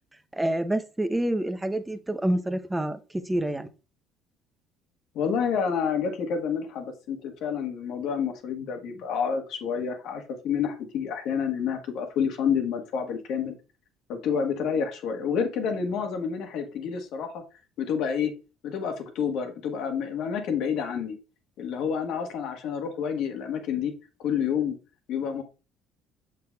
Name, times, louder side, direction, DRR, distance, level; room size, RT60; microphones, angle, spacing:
voice 1, 0.4-3.0 3.3-3.7, right 1 dB, 10° right, 0.8 m, -27 dB
voice 2, 5.1-13.6 14.1-17.4 17.8-18.3 18.6-21.2 21.6-23.9 24.2-24.8 25.1-25.4, left 7 dB, 70° left, 1.5 m, -29 dB
6.6 x 6.0 x 2.4 m
cardioid pair, 95°, 0 cm